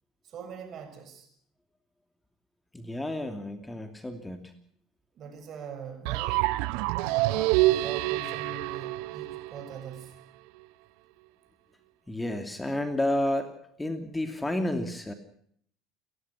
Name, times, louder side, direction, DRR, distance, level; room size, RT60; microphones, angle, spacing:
voice 1, 0.2-1.3 5.1-6.5 6.9-10.2, right 6 dB, 45° right, 7 dB, 6.6 m, -42 dB
voice 2, 2.7-4.5 12.1-13.5 13.8-15.1, left 1 dB, 10° left, 6 dB, 2.8 m, -30 dB
sound 1, 6.0-10.0, right 18 dB, 65° right, 0.9 m, -27 dB
29.5 x 15.0 x 5.8 m, 0.63 s
hypercardioid pair, 65°, 0 cm